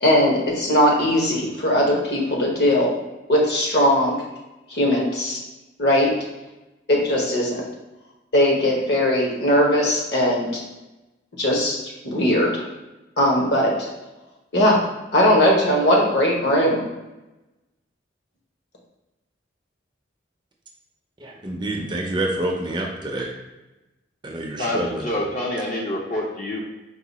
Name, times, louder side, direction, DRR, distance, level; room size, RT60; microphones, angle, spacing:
voice 1, 0.0-2.9 3.3-4.1 4.7-5.4 5.8-6.1 6.9-7.6 8.3-10.6 11.4-11.8 12.0-12.6 13.2-13.9 14.5-14.8 15.1-16.8, left 1 dB, 55° left, -2 dB, 1.0 m, -19 dB
voice 2, 21.2-23.3 24.2-25.1, right 1 dB, 25° right, 0 dB, 0.5 m, -27 dB
voice 3, 24.6-26.6, left 1 dB, 40° left, -4 dB, 0.5 m, -27 dB
4.7 x 2.2 x 4.0 m, 1.0 s
head